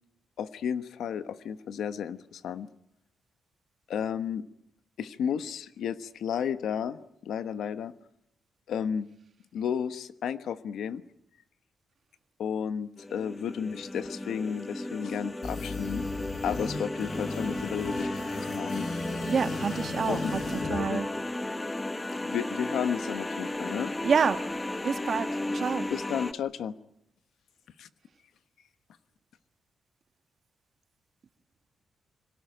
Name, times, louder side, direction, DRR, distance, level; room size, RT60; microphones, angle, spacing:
voice 1, 0.4-2.7 3.9-4.4 5.0-7.9 8.7-9.1 9.5-11.0 12.4-16.0 16.4-18.1 18.4-18.9 20.1-20.4 20.7-21.0 22.2-23.9 25.9-26.7 27.8-27.9, left 8 dB, 85° left, 11 dB, 1.2 m, -32 dB
sound 1, 13.0-26.3, left 1 dB, 15° left, 0.9 m, -34 dB
sound 2, 15.4-21.4, left 3 dB, 65° left, 7.3 m, -38 dB
voice 2, 19.3-20.4 20.7-21.1 24.0-24.4 24.8-25.3 25.5-25.8, right 6 dB, 50° right, 8 dB, 1.6 m, -27 dB
27.0 x 18.0 x 9.2 m, 0.75 s
cardioid pair, 130°, 0 cm